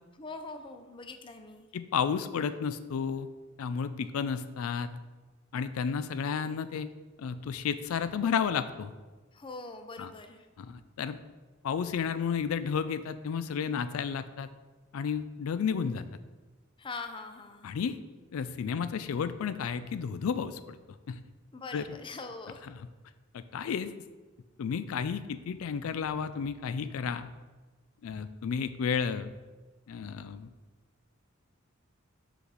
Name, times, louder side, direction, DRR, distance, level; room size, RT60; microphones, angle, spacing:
voice 1, 0.2-1.7 9.3-10.5 16.8-17.7 21.5-22.6, left 3 dB, 25° left, 7 dB, 0.5 m, -42 dB
voice 2, 1.7-3.3 3.6-5.0 5.5-6.9 7.2-8.9 10.0-10.1 10.6-11.2 11.6-14.5 14.9-16.1 17.6-18.0 18.3-20.8 21.1-21.2 21.7-21.9 22.7-22.9 23.3-23.9 24.6-27.3 28.0-29.3 29.9-30.5, left 6 dB, 85° left, 12 dB, 0.4 m, -32 dB
5.7 x 4.1 x 6.2 m, 1.3 s
head